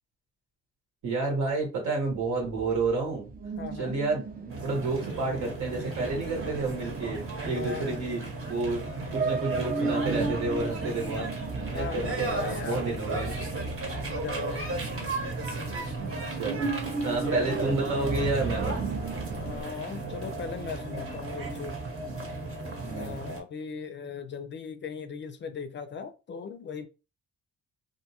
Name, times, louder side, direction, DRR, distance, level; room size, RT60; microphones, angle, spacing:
voice 1, 1.0-3.3 3.8-8.2 8.5-8.8 9.1-11.3 11.7-13.3 15.8-16.7 17.0-19.0 22.8-23.1, right 3 dB, 80° right, 1.4 m, -30 dB
sound 1, 2.1-19.6, right 4 dB, 30° right, 0.4 m, -36 dB
voice 2, 3.6-4.0 7.5-7.9 11.7-12.9 13.9-14.8 17.1-17.3 19.3-21.8 22.9-26.9, left 6 dB, 40° left, 0.4 m, -38 dB
sound 2, 4.5-23.4, right 2 dB, 45° right, 1.0 m, -35 dB
2.6 x 2.2 x 2.8 m
cardioid pair, 90°, 30 cm